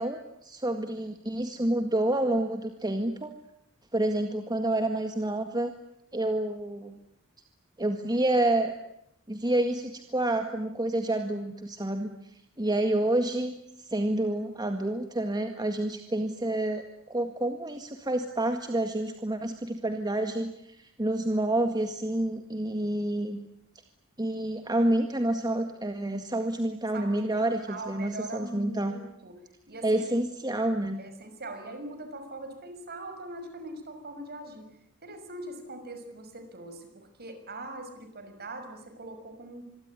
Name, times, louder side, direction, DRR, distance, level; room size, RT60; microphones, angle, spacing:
voice 1, 0.0-3.3 3.9-5.7 6.1-7.0 7.8-8.7 9.3-23.4 24.2-29.0 29.8-31.0, right 1 dB, 20° right, 6 dB, 1.9 m, -28 dB
voice 2, 26.9-29.4 29.7-30.2 31.0-34.7 35.0-39.8, right 2 dB, 50° right, 8 dB, 6.3 m, -42 dB
26.5 x 23.0 x 9.8 m, 0.78 s
head